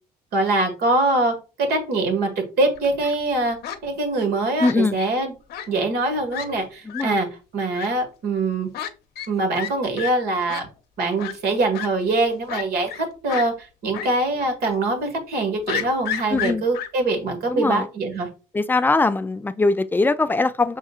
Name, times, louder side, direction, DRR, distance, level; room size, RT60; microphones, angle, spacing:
voice 1, 0.3-3.6 3.8-5.3 5.7-7.3 7.5-8.7 9.3-10.7 11.0-18.3, right 2 dB, 70° right, 1.6 m, -23 dB
Fowl, 2.7-3.2 3.6-3.8 4.6-5.1 5.5-5.7 6.0-6.1 6.3-6.5 6.9-7.0 7.7-7.9 8.7-8.9 9.2-9.3 9.5-9.7 10.0-10.1 10.5-10.6 11.2-11.3 11.7-11.9 12.5-13.0 13.3-13.5 13.9-14.1 14.4-14.5 15.7-16.9, left 9 dB, 70° left, 0.7 m, -30 dB
voice 2, 4.6-5.0 6.9-7.1 16.3-16.6 17.5-17.9 18.5-20.8, left 3 dB, 10° left, 0.3 m, -21 dB
5.4 x 3.6 x 2.4 m
cardioid pair, 110°, 17 cm